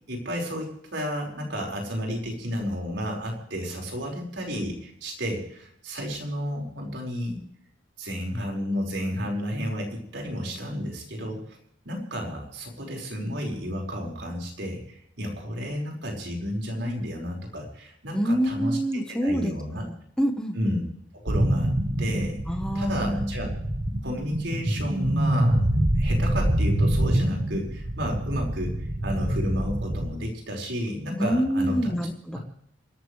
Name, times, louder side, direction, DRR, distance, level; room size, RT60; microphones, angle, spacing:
voice 1, 0.1-7.4 8.0-11.6 11.8-19.8 20.5-20.8 21.1-21.7 22.0-22.4 22.7-23.5 24.0-25.6 26.0-32.0, equal, 70° right, 0 dB, 5.0 m, -32 dB
voice 2, 18.1-20.5 22.5-23.3 31.2-32.4, equal, 5° left, 5 dB, 1.1 m, -26 dB
sound 1, 21.3-30.1, right 1 dB, 45° right, 1.3 m, -25 dB
27.5 x 13.5 x 3.3 m, 0.71 s
head